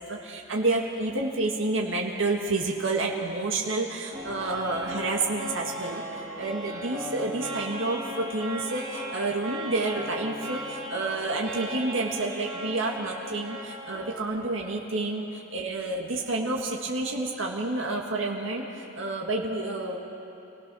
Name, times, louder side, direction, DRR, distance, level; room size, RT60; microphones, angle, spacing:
voice 1, 0.0-20.0, right 2 dB, 65° right, -1 dB, 1.8 m, -29 dB
sound 1, 4.1-14.2, equal, 15° right, 3.4 m, -37 dB
26.5 x 17.5 x 6.2 m, 2.8 s
head